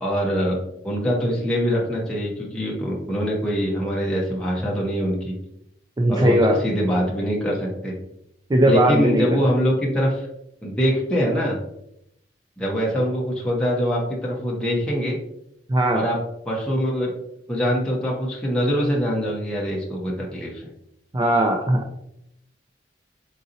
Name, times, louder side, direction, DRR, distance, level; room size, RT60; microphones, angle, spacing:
voice 1, 0.0-0.6 0.8-5.3 6.1-7.9 8.7-10.3 10.6-11.6 12.6-15.2 15.9-16.2 16.4-17.1 17.5-20.7, equal, 5° left, -4 dB, 0.7 m, -23 dB
voice 2, 6.0-6.6 8.5-9.4 15.7-16.0 21.1-21.8, right 1 dB, 25° right, 2 dB, 0.4 m, -18 dB
3.9 x 3.9 x 2.7 m, 0.79 s
head